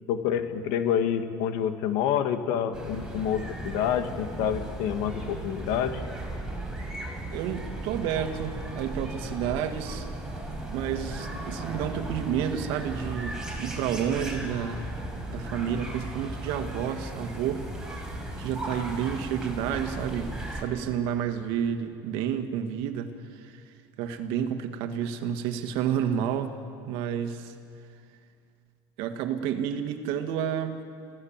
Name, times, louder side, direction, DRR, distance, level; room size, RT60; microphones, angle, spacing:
voice 1, 0.1-6.0, left 9 dB, 75° left, 8 dB, 1.8 m, -28 dB
sound 1, 2.7-20.6, right 1 dB, 5° right, 5.1 m, -36 dB
voice 2, 7.3-10.1 10.7-15.0 15.3-17.7 18.4-26.6 26.9-27.5 29.0-30.8, right 9 dB, 70° right, 7 dB, 1.8 m, -30 dB
27.5 x 16.0 x 7.4 m, 2.3 s
cardioid pair, 130°, 9 cm